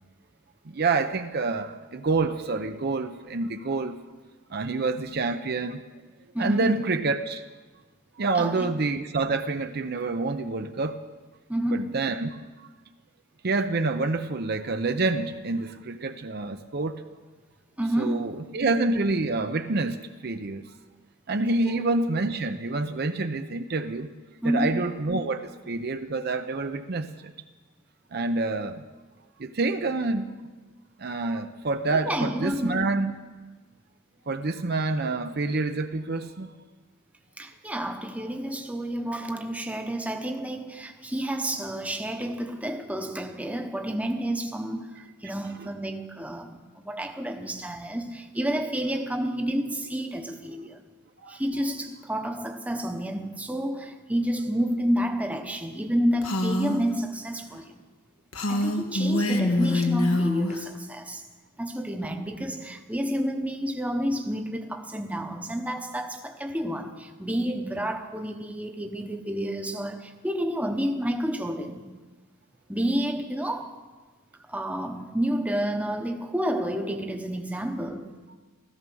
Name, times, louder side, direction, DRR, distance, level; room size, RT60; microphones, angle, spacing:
voice 1, 0.6-4.0 4.5-5.8 6.4-7.4 8.2-11.0 11.7-12.3 12.6-12.7 13.4-17.0 18.0-20.7 21.3-24.1 24.4-27.3 28.1-28.8 29.4-30.5 31.0-33.1 34.3-36.5 51.2-51.4, right 3 dB, 50° right, 0.6 m, -27 dB
voice 2, 6.3-6.8 8.3-8.8 11.5-12.0 17.8-18.5 21.6-21.8 24.4-24.9 31.2-31.4 32.1-32.9 37.4-50.8 51.3-57.8 58.5-61.2 61.6-72.0 72.7-73.9 74.5-78.2, equal, 5° right, 1.0 m, -30 dB
Female speech woman speaking, 56.2-56.8 58.3-60.6, left 1 dB, 90° left, 1.5 m, -25 dB
16.0 x 14.5 x 6.2 m
head